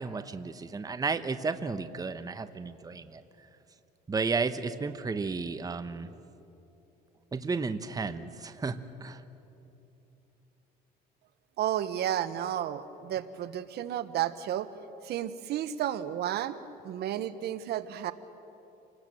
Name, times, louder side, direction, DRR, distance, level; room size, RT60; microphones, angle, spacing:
voice 1, 0.0-3.5 4.1-6.1 7.3-9.2, right 4 dB, 20° right, 10 dB, 1.0 m, -33 dB
voice 2, 11.6-14.7 15.0-18.1, right 11 dB, 65° right, 13 dB, 1.1 m, -32 dB
28.5 x 19.0 x 7.7 m, 2.9 s
cardioid pair, 105°, 18 cm